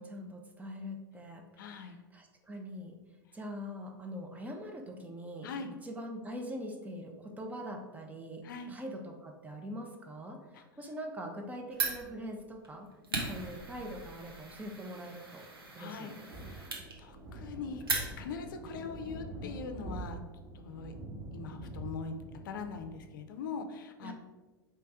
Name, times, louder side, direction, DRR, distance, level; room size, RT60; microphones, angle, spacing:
voice 1, 0.0-3.0 3.3-5.5 5.8-12.9 13.3-15.5 15.7-16.3 24.0-24.1, equal, 15° right, 3 dB, 0.6 m, -43 dB
voice 2, 1.6-2.0 5.4-5.7 8.4-8.7 10.5-10.6 13.1-13.3 15.8-17.8 18.2-20.2 20.5-20.9 21.3-22.1 22.4-24.1, left 5 dB, 60° left, 6 dB, 0.5 m, -42 dB
Fire, 11.7-18.5, right 3 dB, 80° right, 1.0 m, -39 dB
sound 1, 16.3-23.0, right 2 dB, 45° right, 1.5 m, -45 dB
3.3 x 3.2 x 4.7 m, 1.2 s
figure-of-eight pair, 90°, 12 cm